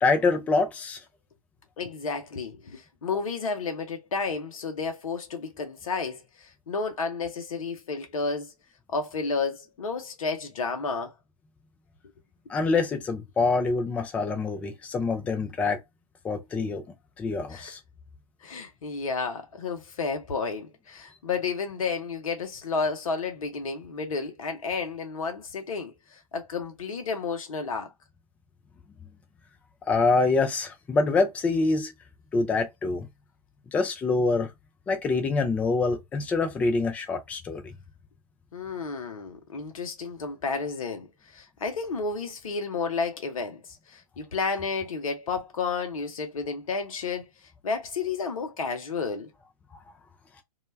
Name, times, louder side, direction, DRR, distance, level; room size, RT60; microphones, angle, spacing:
voice 1, 0.0-1.0 12.5-15.8 16.2-16.8 17.2-17.8 29.9-31.9 32.3-33.1 33.7-34.5 34.9-37.6, left 3 dB, 5° left, 0.3 m, -25 dB
voice 2, 1.8-8.5 8.9-11.1 17.5-17.8 18.4-27.9 38.5-43.6 43.9-47.2 47.6-49.3, left 4 dB, 65° left, 0.6 m, -31 dB
2.3 x 2.1 x 3.1 m
figure-of-eight pair, 120°, 19 cm